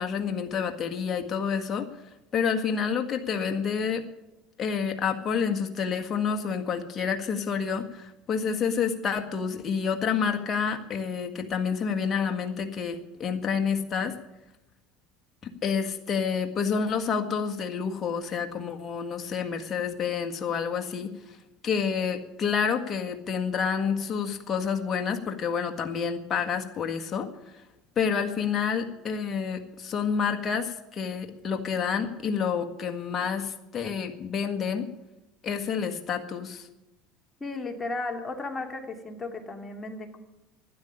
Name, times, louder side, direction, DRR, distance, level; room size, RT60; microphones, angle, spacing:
voice 1, 0.0-1.9 2.3-4.0 4.6-14.1 15.6-21.1 21.6-27.3 28.0-34.9 35.4-36.7, left 6 dB, 35° left, 4 dB, 1.7 m, -28 dB
voice 2, 37.4-40.2, left 3 dB, 20° left, 2 dB, 2.6 m, -35 dB
12.0 x 10.0 x 10.0 m, 0.95 s
supercardioid pair, 95°, 0 cm